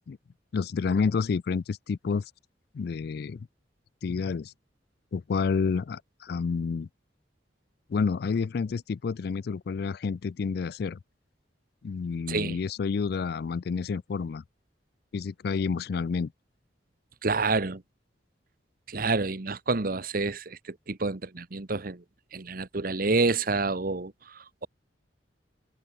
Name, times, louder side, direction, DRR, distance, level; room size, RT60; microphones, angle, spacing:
voice 1, 0.5-2.2 2.7-3.5 4.0-4.5 5.1-6.9 7.9-11.0 11.8-14.4 15.1-16.3, left 5 dB, 60° left, 0.4 m, -29 dB
voice 2, 12.3-12.6 17.2-17.8 18.9-22.0 22.3-24.7, right 3 dB, 50° right, 1.1 m, -28 dB
head